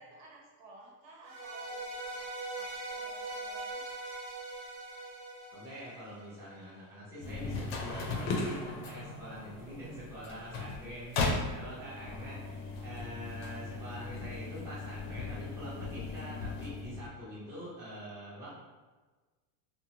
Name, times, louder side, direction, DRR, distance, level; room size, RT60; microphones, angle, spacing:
voice 1, 0.0-2.3 2.6-4.0 11.8-12.5, right 2 dB, 90° right, -3 dB, 1.0 m, -55 dB
sound 1, 1.2-6.5, right 2 dB, 50° right, 0.7 m, -41 dB
voice 2, 5.5-18.6, equal, 5° right, -10 dB, 0.4 m, -45 dB
sound 2, 7.2-17.1, left 3 dB, 50° left, 0.5 m, -37 dB
2.6 x 2.0 x 2.8 m, 1.3 s
supercardioid pair, 155°, 49 cm